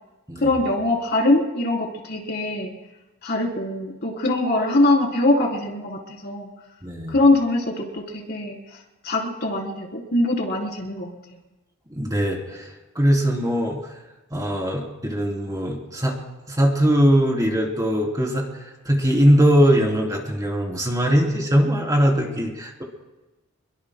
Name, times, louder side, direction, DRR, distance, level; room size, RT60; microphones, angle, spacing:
voice 1, 0.4-2.7 3.2-6.5 7.1-8.8 9.0-11.1, left 2 dB, 50° left, -1 dB, 3.6 m, -22 dB
voice 2, 6.8-7.1 11.9-13.8 14.3-16.2 16.5-22.8, equal, 20° right, -1 dB, 3.3 m, -21 dB
27.5 x 22.5 x 2.2 m, 1.1 s
head